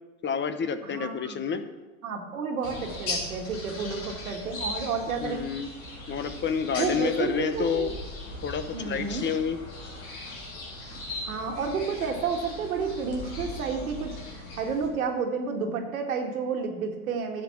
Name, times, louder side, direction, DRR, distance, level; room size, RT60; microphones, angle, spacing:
voice 1, 0.2-1.6 5.2-5.7 6.1-7.9 8.4-9.6, left 6 dB, 25° left, 10 dB, 0.9 m, -29 dB
voice 2, 0.8-1.5 2.0-5.4 6.8-7.9 8.7-9.3 11.2-17.4, right 5 dB, 85° right, 3 dB, 2.0 m, -31 dB
sound 1, 2.6-14.9, left 2 dB, 85° left, 3.9 m, -38 dB
11.5 x 7.6 x 5.9 m, 1.2 s
hypercardioid pair, 95°, 41 cm